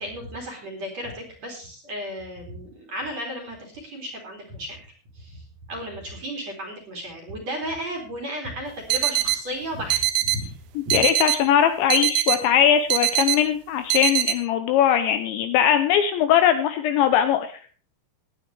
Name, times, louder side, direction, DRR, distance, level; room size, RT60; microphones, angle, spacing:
voice 1, 0.0-4.8 5.1-5.4 5.7-10.5 10.9-11.0, equal, 40° right, 1 dB, 3.1 m, -34 dB
sound 1, 8.9-9.4 9.9-10.4 10.9-11.4 11.9-12.4 12.9-13.4 13.9-14.3, right 14 dB, 80° right, 2.7 m, -23 dB
voice 2, 10.9-17.5, left 9 dB, 80° left, 9 dB, 2.8 m, -20 dB
19.5 x 9.2 x 3.3 m, 0.38 s
omnidirectional pair, 5.8 m